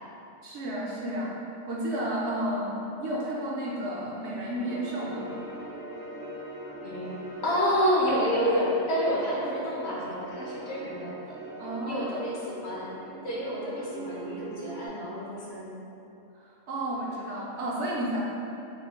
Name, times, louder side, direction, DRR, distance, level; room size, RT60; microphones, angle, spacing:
voice 1, 0.4-1.3 1.7-5.3 11.6-12.1 16.4-18.2, right 1 dB, 65° right, -4 dB, 0.8 m, -32 dB
sound 1, 4.6-14.9, right 1 dB, 85° right, 1.2 m, -41 dB
voice 2, 6.8-7.2 7.4-11.4 11.9-13.0 13.2-15.7, equal, 60° left, -6 dB, 0.9 m, -29 dB
4.2 x 2.3 x 3.4 m, 2.9 s
omnidirectional pair, 1.4 m